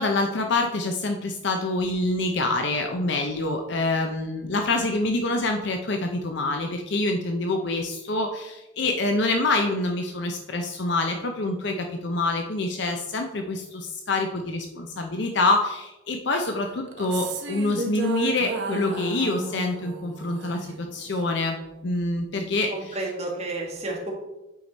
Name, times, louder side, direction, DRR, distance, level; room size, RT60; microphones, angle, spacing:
voice 1, 0.0-21.6 21.8-22.7, left 2 dB, 60° left, 4 dB, 0.6 m, -26 dB
sound 1, 16.8-21.3, right 3 dB, 60° right, 0.8 m, -33 dB
voice 2, 22.7-24.1, right 2 dB, 35° right, -1 dB, 1.6 m, -31 dB
8.5 x 4.7 x 4.0 m, 1.0 s
head